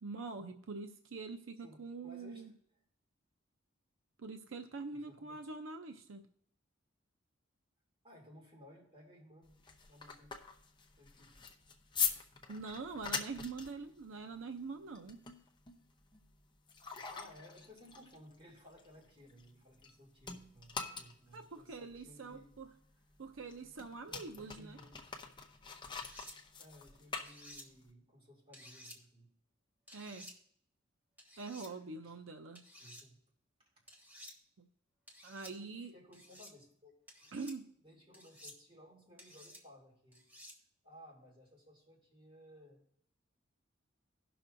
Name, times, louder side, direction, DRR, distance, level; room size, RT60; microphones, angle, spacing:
voice 1, 0.0-2.5 4.2-6.2 12.5-15.2 21.3-22.7 23.2-24.8 29.9-30.3 31.4-32.6 34.6-34.7 35.2-35.9 37.3-37.7, right 4 dB, 85° right, 6 dB, 0.6 m, -44 dB
voice 2, 1.6-2.5 4.9-5.4 8.0-10.3 11.0-11.3 16.8-22.5 23.6-23.7 24.4-25.1 26.6-29.3 31.7-31.8 32.0-32.1 32.8-33.2 33.7-33.8 35.5-36.9 37.2-37.4 37.8-40.2 40.8-42.8, equal, 30° right, -3 dB, 2.8 m, -59 dB
sound 1, 9.4-19.9 20.2-27.9, left 6 dB, 25° left, 0.8 m, -43 dB
sound 2, 25.9-26.4 27.1-27.7 28.5-29.0 29.9-30.4 31.2-31.7 32.6-33.0 33.9-34.3 35.1-35.5 36.1-36.5 37.1-37.6 38.1-38.6 39.2-39.6 40.1-40.6, equal, 10° right, 1.4 m, -54 dB
17.5 x 6.0 x 2.6 m, 0.66 s
head